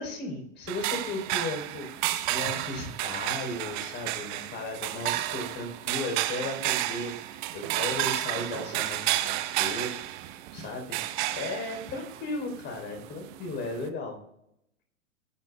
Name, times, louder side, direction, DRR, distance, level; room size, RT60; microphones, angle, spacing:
voice 1, 0.0-9.9 10.2-11.0 11.3-14.2, left 2 dB, 25° left, 4 dB, 4.1 m, -36 dB
sound 1, 0.7-13.9, right 15 dB, 35° right, 0.9 m, -32 dB
19.5 x 9.7 x 2.4 m, 0.78 s
hypercardioid pair, 110°, 41 cm